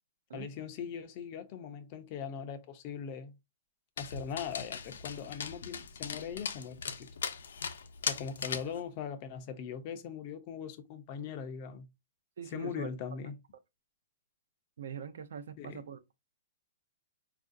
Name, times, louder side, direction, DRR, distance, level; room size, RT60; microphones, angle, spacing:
voice 1, 0.3-3.3 4.0-7.1 8.0-11.9 12.5-13.4 15.6-15.8, left 7 dB, 30° left, 0.4 m, -40 dB
Dog, 4.0-8.8, left 6 dB, 85° left, 0.5 m, -39 dB
voice 2, 12.4-12.9 14.8-16.1, right 7 dB, 70° right, 0.5 m, -43 dB
4.4 x 2.4 x 2.5 m
hypercardioid pair, 175°, 0 cm